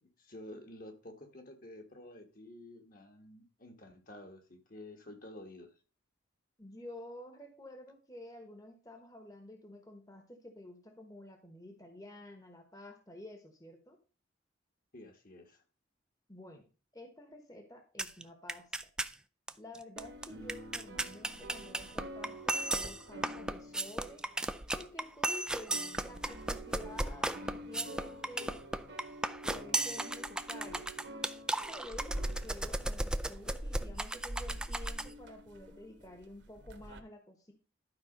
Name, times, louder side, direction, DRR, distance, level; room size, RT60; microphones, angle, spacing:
voice 1, 0.0-5.7 14.9-15.6, left 1 dB, 45° left, 1.5 m, -51 dB
voice 2, 6.6-14.0 16.3-16.7 16.9-18.7 19.6-24.2 24.7-28.7 29.4-30.9 31.7-37.5, left 1 dB, 20° left, 1.1 m, -50 dB
sound 1, 18.0-18.2 18.5-19.1 19.5-19.6 19.7-35.1, right 1 dB, 5° right, 0.4 m, -35 dB
sound 2, 20.0-25.3 25.5-37.0, right 1 dB, 60° right, 1.4 m, -46 dB
12.0 x 4.9 x 5.2 m
head